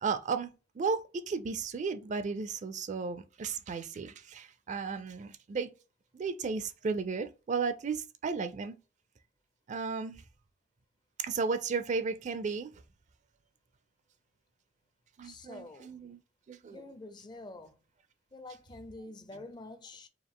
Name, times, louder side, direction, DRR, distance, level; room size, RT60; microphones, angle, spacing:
voice 1, 0.0-5.7 6.1-8.8 9.7-10.2 11.2-12.7 15.2-16.2 16.5-16.8, right 5 dB, 40° right, 0.4 m, -34 dB
voice 2, 15.2-16.0 16.7-17.8 18.3-20.1, left 2 dB, 25° left, 0.5 m, -47 dB
4.6 x 2.4 x 3.6 m
head